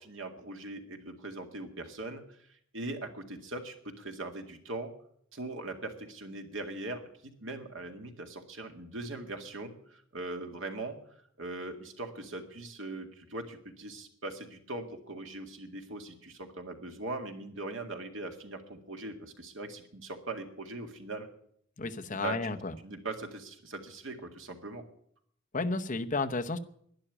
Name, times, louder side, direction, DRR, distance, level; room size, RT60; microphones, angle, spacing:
voice 1, 0.0-2.4 2.7-4.9 5.3-11.0 11.4-21.3 22.1-22.6 22.8-24.8, right 2 dB, 75° right, 5 dB, 2.1 m, -40 dB
voice 2, 21.8-22.7 25.5-26.6, left 3 dB, 40° left, 6 dB, 0.9 m, -32 dB
11.5 x 10.0 x 9.9 m, 0.67 s
head